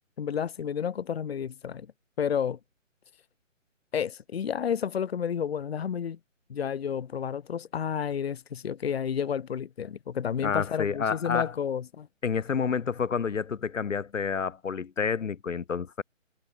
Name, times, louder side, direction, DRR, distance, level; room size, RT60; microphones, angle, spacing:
voice 1, 0.2-1.9 2.2-2.6 3.9-6.2 6.5-12.1, left 8 dB, 50° left, 1.2 m, -31 dB
voice 2, 10.4-11.5 12.2-16.0, left 6 dB, 70° left, 1.2 m, -29 dB
figure-of-eight pair, 150°, 39 cm